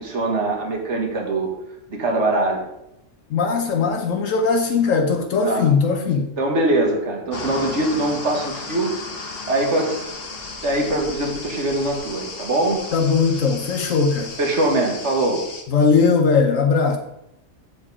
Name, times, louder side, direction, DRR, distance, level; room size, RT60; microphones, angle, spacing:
voice 1, 0.0-1.5 1.9-2.7 5.4-5.6 6.4-8.9 9.5-10.0 10.6-12.8 14.4-15.4, right 2 dB, 65° right, 1 dB, 2.0 m, -22 dB
voice 2, 3.3-6.3 12.9-14.3 15.7-17.0, left 5 dB, 80° left, 4 dB, 1.3 m, -19 dB
sound 1, 7.3-15.6, left 3 dB, 50° left, 1.4 m, -34 dB
8.1 x 7.4 x 4.9 m, 0.85 s
omnidirectional pair, 1.3 m